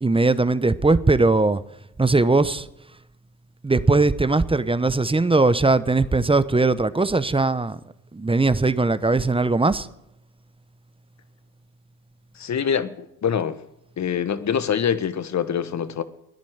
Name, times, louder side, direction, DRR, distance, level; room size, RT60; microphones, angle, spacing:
voice 1, 0.0-1.6 2.0-2.7 3.6-7.8 8.1-9.9, right 3 dB, 15° right, 0.9 m, -19 dB
voice 2, 12.4-13.6 14.0-16.0, left 7 dB, 45° left, 1.4 m, -25 dB
14.5 x 10.5 x 9.5 m
hypercardioid pair, 60°, 40 cm